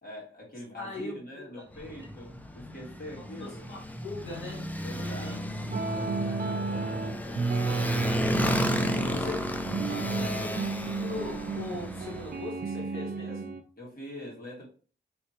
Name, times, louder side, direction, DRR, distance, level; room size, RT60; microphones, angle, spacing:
voice 1, 0.0-3.6 4.8-8.2 8.7-9.4 10.1-10.6 13.8-14.7, equal, 50° left, -4 dB, 1.9 m, -44 dB
voice 2, 0.8-1.6 1.9-2.1 3.4-4.6 4.9-5.4 9.1-9.6 10.4-13.5, left 3 dB, 85° left, -2 dB, 1.3 m, -40 dB
Motorcycle, 1.7-12.4, left 1 dB, 10° left, 0.4 m, -33 dB
sound 1, 5.7-13.6, right 4 dB, 50° right, 0.5 m, -32 dB
3.3 x 3.1 x 2.8 m, 0.40 s
wide cardioid pair, 80°, 20 cm